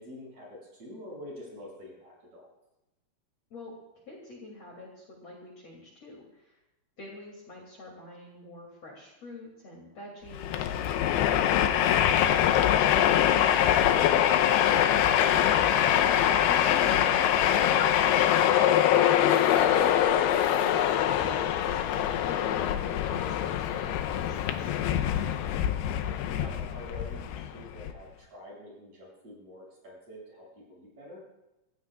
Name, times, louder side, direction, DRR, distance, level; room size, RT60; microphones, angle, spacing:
voice 1, 0.0-2.5 25.2-25.8 26.1-31.2, left 1 dB, 45° right, -3 dB, 7.8 m, -47 dB
voice 2, 4.1-6.6 7.0-11.0 15.9-24.7, left 2 dB, 40° left, -2 dB, 3.3 m, -46 dB
Train, 10.3-27.9, left 10 dB, 90° left, 2.7 m, -24 dB
25.0 x 15.5 x 2.4 m, 0.96 s
omnidirectional pair, 4.6 m